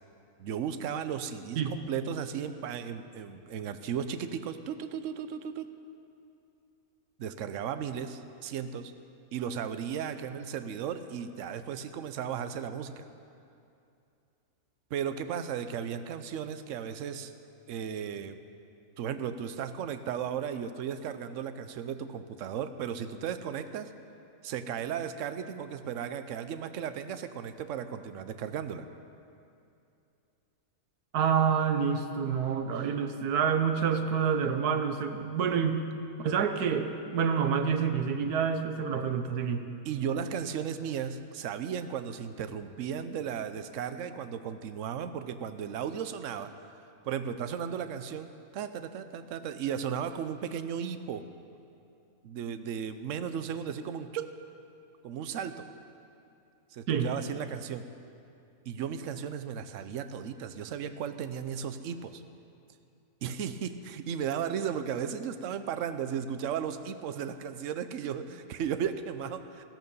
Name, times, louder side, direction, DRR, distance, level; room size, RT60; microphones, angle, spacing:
voice 1, 0.4-5.7 7.2-8.9 9.3-13.1 14.9-17.3 17.7-18.4 19.0-23.9 24.4-28.9 39.8-46.5 46.8-51.3 52.2-54.3 55.0-55.7 56.7-57.9 58.7-62.2 63.2-69.6, right 8 dB, 60° right, 10 dB, 1.0 m, -35 dB
voice 2, 31.1-35.9 36.2-39.7 56.9-57.1, right 7 dB, 85° right, 7 dB, 1.4 m, -28 dB
15.0 x 13.5 x 5.5 m, 2.6 s
omnidirectional pair, 1.6 m